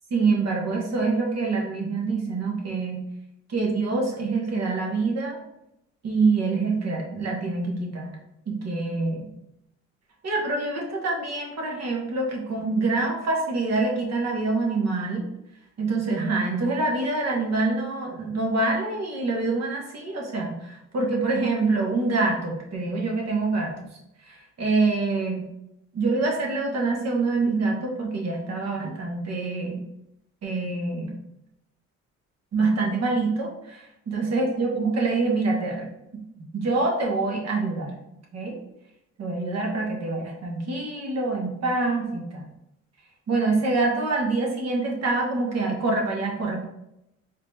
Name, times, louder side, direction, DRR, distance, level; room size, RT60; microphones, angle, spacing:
voice 1, 0.1-3.0 3.5-5.4 6.0-8.1 8.5-9.2 10.2-15.2 15.8-23.8 24.2-25.5 25.9-29.8 30.4-31.2 32.5-35.9 36.5-37.9 38.3-38.6 39.2-42.4 43.3-46.6, right 3 dB, 60° right, -1 dB, 1.3 m, -25 dB
4.0 x 3.4 x 2.7 m, 0.84 s
cardioid pair, 90°, 30 cm